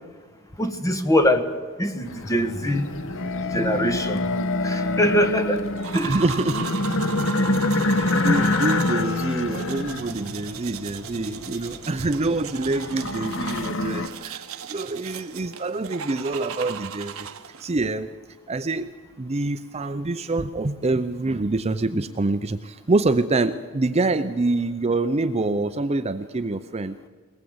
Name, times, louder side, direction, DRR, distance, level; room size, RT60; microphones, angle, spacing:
voice 1, 0.6-1.5 1.8-2.9 3.5-4.3 4.6-5.6 5.9-6.2, equal, 15° left, 7 dB, 1.4 m, -23 dB
sound 1, 2.1-14.1, left 2 dB, 60° left, 1.0 m, -26 dB
sound 2, 5.8-17.7, right 7 dB, 65° right, 1.0 m, -37 dB
voice 2, 6.0-6.7 7.7-14.4 14.7-17.3 17.6-18.1 18.5-26.9, right 2 dB, 30° right, 10 dB, 0.6 m, -26 dB
22.0 x 19.0 x 7.9 m, 1.5 s
head